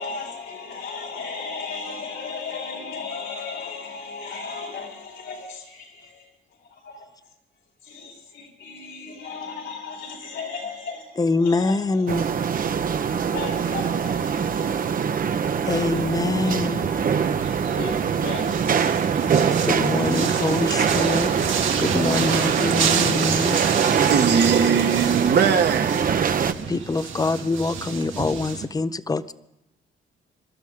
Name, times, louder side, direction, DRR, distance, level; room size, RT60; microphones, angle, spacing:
voice 1, 0.0-7.3 7.8-12.3 13.3-15.6 17.7-19.6 24.9-25.0, left 4 dB, 80° left, 4.3 m, -36 dB
voice 2, 11.2-12.3 15.6-16.9 19.4-21.3 21.8-23.7 26.7-29.3, left 3 dB, 20° left, 0.6 m, -25 dB
sound 1, 12.1-26.5, right 7 dB, 45° right, 0.8 m, -23 dB
sound 2, 15.9-28.6, right 7 dB, 80° right, 2.0 m, -30 dB
voice 3, 24.1-26.1, right 6 dB, 60° right, 1.3 m, -21 dB
28.0 x 12.5 x 3.7 m
cardioid pair, 90°, 20 cm